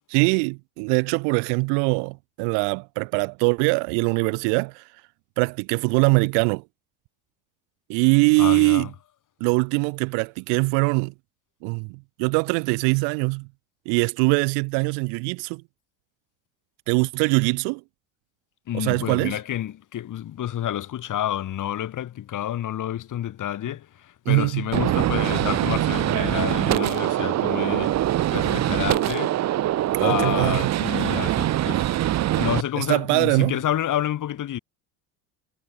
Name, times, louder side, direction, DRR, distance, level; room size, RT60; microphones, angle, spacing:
voice 1, 0.1-4.8 5.4-6.6 7.9-8.9 9.4-11.1 11.6-13.5 13.9-15.6 16.9-17.8 18.7-19.4 24.3-24.6 29.9-30.7 32.8-33.6, right 40 dB or more, 75° right, 0.9 m, -22 dB
voice 2, 8.4-8.9 18.7-29.4 29.9-31.9 32.4-34.6, left 11 dB, 45° left, 6.4 m, -29 dB
Gunshot gunfire, 24.7-32.6, right 13 dB, 40° right, 0.9 m, -23 dB
supercardioid pair, 110°, 41 cm